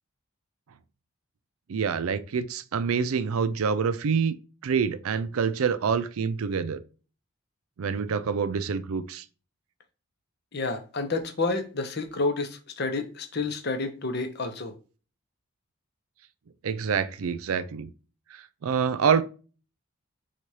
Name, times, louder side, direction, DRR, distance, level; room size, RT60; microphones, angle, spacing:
voice 1, 1.7-4.4 4.6-6.8 7.8-9.2 16.6-17.9 18.6-19.2, right 6 dB, 75° right, 0.4 m, -26 dB
voice 2, 10.5-14.7, left 3 dB, 45° left, 0.7 m, -29 dB
4.1 x 2.4 x 4.7 m
head